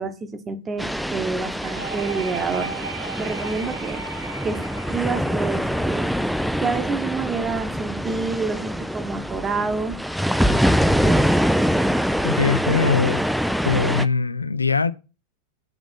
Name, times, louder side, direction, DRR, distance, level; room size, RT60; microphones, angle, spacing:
voice 1, 0.0-2.7 3.2-4.0 4.4-4.6 4.9-6.1 6.6-10.0 10.5-11.3, right 4 dB, 20° right, 0.9 m, -28 dB
sound 1, 0.8-14.1, equal, ahead, 0.3 m, -24 dB
sound 2, 1.6-7.2, right 5 dB, 65° right, 1.3 m, -36 dB
voice 2, 12.2-13.3 13.6-14.9, left 5 dB, 80° left, 0.3 m, -21 dB
6.0 x 3.5 x 5.4 m
figure-of-eight pair, 90°, 0 cm